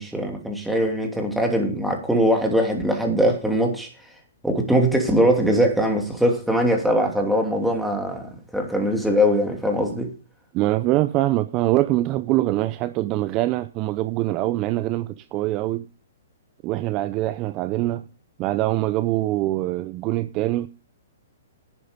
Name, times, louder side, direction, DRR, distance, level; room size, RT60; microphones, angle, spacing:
voice 1, 0.0-3.9 4.4-10.1, equal, ahead, 2.9 m, -21 dB
voice 2, 10.5-15.8 16.6-18.0 18.4-20.7, right 16 dB, 30° right, 0.6 m, -23 dB
11.0 x 9.3 x 5.2 m
hypercardioid pair, 140°, 0 cm